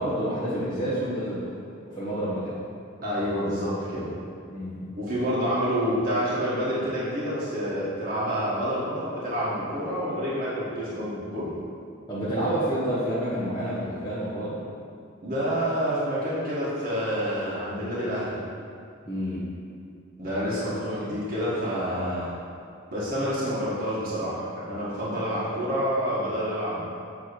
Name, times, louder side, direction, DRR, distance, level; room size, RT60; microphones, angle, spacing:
voice 1, 0.0-1.5 1.9-2.6 4.5-4.9 12.1-14.6 19.0-19.5, right 1 dB, 20° left, -12 dB, 1.4 m, -29 dB
voice 2, 3.0-4.1 4.9-11.5 15.2-18.4 20.2-22.3 22.9-26.8, equal, 45° right, -9 dB, 1.6 m, -28 dB
8.3 x 3.4 x 6.1 m, 2.4 s
head